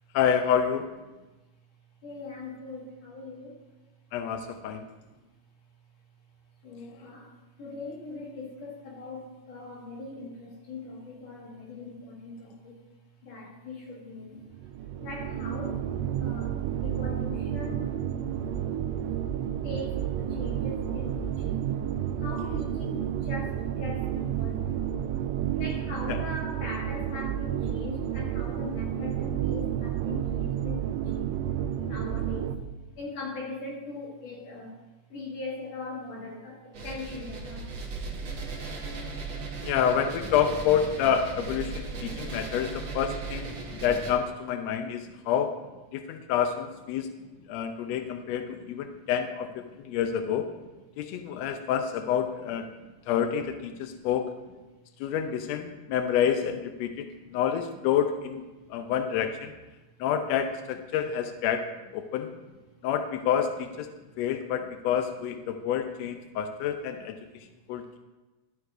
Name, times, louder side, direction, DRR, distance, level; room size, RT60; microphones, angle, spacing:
voice 1, 0.1-0.9 4.1-4.9 26.1-26.2 39.6-45.6 45.9-47.1 47.5-50.5 51.0-52.7 53.1-54.3 55.0-58.4 58.7-59.5 60.0-62.4 62.8-63.9 64.2-68.0, left 8 dB, 80° left, 7 dB, 1.5 m, -28 dB
voice 2, 2.0-3.5 5.1-5.2 6.6-7.3 7.6-12.8 13.2-14.4 15.0-15.9 16.2-17.9 18.5-18.6 19.6-21.7 22.2-24.6 25.6-31.4 31.8-32.6 33.0-34.8 35.1-37.7 43.7-43.8 46.9-47.3 47.9-48.3 48.9-49.1 51.3-51.6 52.7-52.9 53.7-54.1 57.2-57.3 58.6-58.8 63.9-64.1, left 2 dB, 60° left, -3 dB, 2.8 m, -40 dB
sound 1, 14.5-32.6, right 10 dB, 85° right, 1.5 m, -31 dB
sound 2, 36.7-44.1, right 3 dB, 55° right, 1.8 m, -37 dB
12.0 x 7.8 x 2.5 m, 1.1 s
omnidirectional pair, 3.5 m